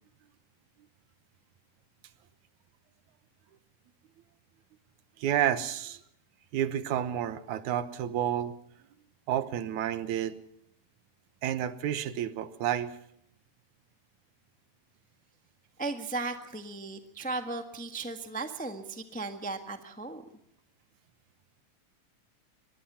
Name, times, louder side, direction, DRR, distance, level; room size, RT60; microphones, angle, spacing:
voice 1, 5.2-6.0 6.5-8.6 9.3-10.4 11.4-13.0, right 10 dB, 85° right, 13 dB, 2.5 m, -30 dB
voice 2, 15.8-20.2, right 3 dB, 5° left, 6 dB, 0.6 m, -36 dB
24.5 x 20.5 x 5.7 m, 0.73 s
omnidirectional pair, 3.3 m